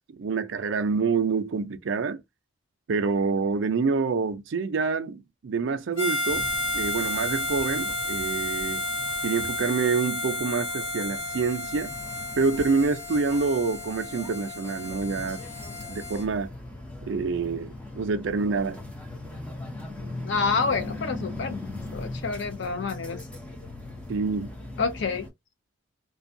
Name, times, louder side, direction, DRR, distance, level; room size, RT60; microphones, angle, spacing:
voice 1, 0.1-2.2 2.9-6.5 6.7-8.8 9.2-11.9 12.3-15.4 15.9-16.5 17.1-18.8 24.1-24.5, right 4 dB, 65° right, 0.4 m, -27 dB
Harmonica, 6.0-16.2, left 1 dB, 90° left, 1.1 m, -32 dB
sound 1, 6.3-25.3, left 2 dB, 5° left, 0.5 m, -40 dB
voice 2, 20.2-21.6 21.9-23.2 24.8-25.2, left 4 dB, 60° left, 0.4 m, -28 dB
2.5 x 2.3 x 2.6 m
head